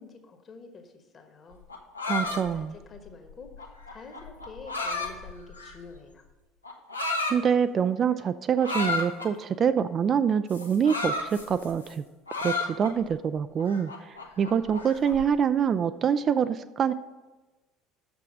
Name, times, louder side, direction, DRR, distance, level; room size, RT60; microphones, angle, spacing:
voice 1, 0.0-1.6 2.1-6.3, left 4 dB, 35° left, 6 dB, 1.3 m, -47 dB
sound 1, 1.5-6.0 6.6-7.4 8.6-9.3 10.5-11.9 12.3-13.1 13.6-15.2, left 3 dB, 85° left, 0.8 m, -33 dB
voice 2, 2.1-2.7 7.3-12.0 12.4-16.9, right 7 dB, 35° right, 13 dB, 0.3 m, -25 dB
6.5 x 6.1 x 7.3 m, 1.2 s
figure-of-eight pair, 60°, 0 cm